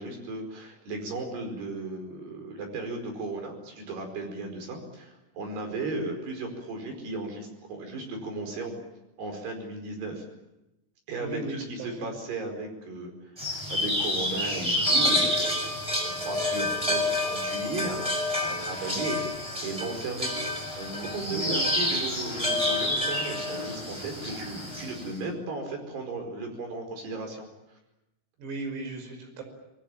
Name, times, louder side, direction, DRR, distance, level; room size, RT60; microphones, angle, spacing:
voice 1, 0.0-8.8 9.2-10.2 11.1-20.3 20.8-27.5, right 2 dB, 55° right, 4 dB, 6.7 m, -36 dB
voice 2, 11.2-12.1 21.3-21.6 28.4-29.4, right 2 dB, 90° right, 4 dB, 8.2 m, -36 dB
sound 1, 13.4-25.1, left 1 dB, 5° right, 6.1 m, -28 dB
27.5 x 21.0 x 9.0 m, 0.96 s
omnidirectional pair, 5.9 m